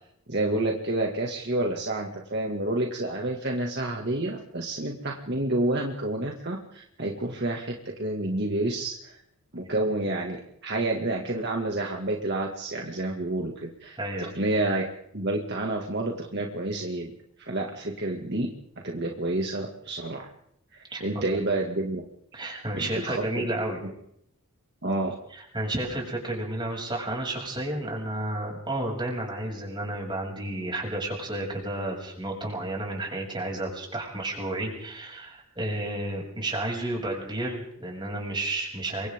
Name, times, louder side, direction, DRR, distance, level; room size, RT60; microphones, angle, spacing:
voice 1, 0.3-9.2 9.5-14.8 15.1-17.1 17.4-18.5 18.8-20.3 20.7-22.0 22.7-23.4 24.8-25.1, right 2 dB, 50° right, 1 dB, 2.3 m, -29 dB
voice 2, 14.0-14.3 20.9-21.4 22.3-23.8 25.3-39.1, right 1 dB, 20° right, -1 dB, 7.3 m, -32 dB
29.0 x 25.0 x 3.8 m, 0.72 s
head